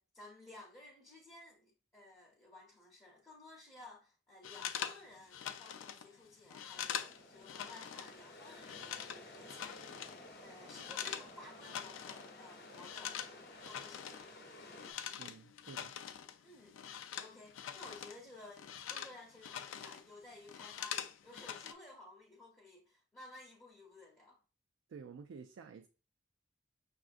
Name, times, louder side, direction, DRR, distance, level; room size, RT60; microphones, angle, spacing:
voice 1, 0.0-14.3 16.4-24.4, left 2 dB, 15° left, 0.6 m, -56 dB
sound 1, 4.4-8.2 8.4-11.3 11.6-12.3 12.6-18.2 18.5-20.1 20.3-21.7, left 9 dB, 90° left, 0.4 m, -44 dB
sound 2, 6.7-14.9, left 1 dB, 55° left, 0.7 m, -54 dB
voice 2, 15.2-15.9 24.9-25.9, right 5 dB, 80° right, 0.3 m, -51 dB
5.8 x 2.4 x 2.4 m
head